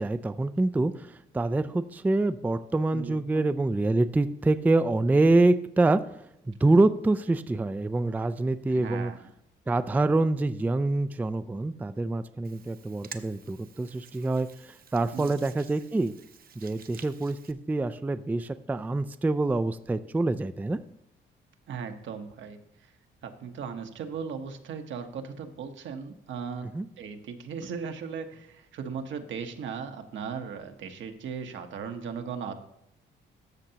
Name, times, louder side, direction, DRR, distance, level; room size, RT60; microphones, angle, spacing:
voice 1, 0.0-6.0 6.5-9.1 9.7-16.1 16.6-20.8 26.7-26.9, right 2 dB, 10° right, 12 dB, 0.3 m, -26 dB
voice 2, 2.9-3.4 8.7-9.2 15.1-15.3 21.7-22.9 23.2-26.7 27.0-32.6, right 6 dB, 70° right, 6 dB, 1.1 m, -37 dB
Hands, 12.4-17.5, right 7 dB, 50° right, 0.7 m, -50 dB
13.5 x 6.6 x 2.9 m, 0.80 s
cardioid pair, 90°, 20 cm